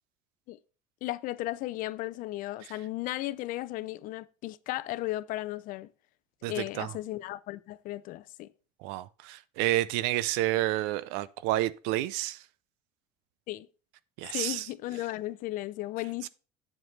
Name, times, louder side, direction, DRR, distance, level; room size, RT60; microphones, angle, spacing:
voice 1, 1.0-5.9 6.5-8.5 13.5-13.7 14.3-16.3, left 16 dB, 55° left, 0.5 m, -35 dB
voice 2, 6.4-6.9 8.8-12.4 14.2-14.7 16.2-16.3, right 15 dB, 80° right, 0.5 m, -30 dB
7.8 x 7.4 x 3.2 m
cardioid pair, 145°, 17 cm